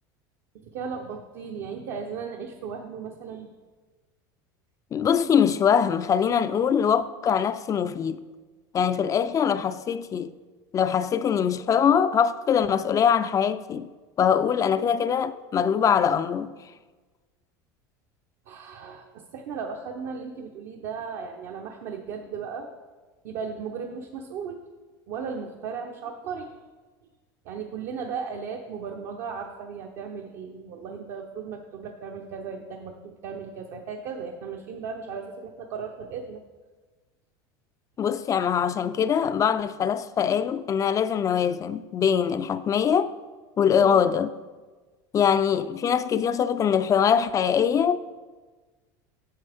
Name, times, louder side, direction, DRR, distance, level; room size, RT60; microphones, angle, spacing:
voice 1, 0.7-3.5 14.7-14.8 18.5-22.7 23.2-24.6 25.1-26.6 27.4-36.4 43.7-44.1, right 6 dB, 60° right, 0.8 m, -36 dB
voice 2, 4.9-8.2 8.7-10.3 10.7-13.9 14.2-16.5 38.0-43.1 43.6-44.3 45.1-48.0, left 7 dB, 30° left, 0.4 m, -23 dB
8.6 x 7.4 x 3.5 m
supercardioid pair, 100°, 11 cm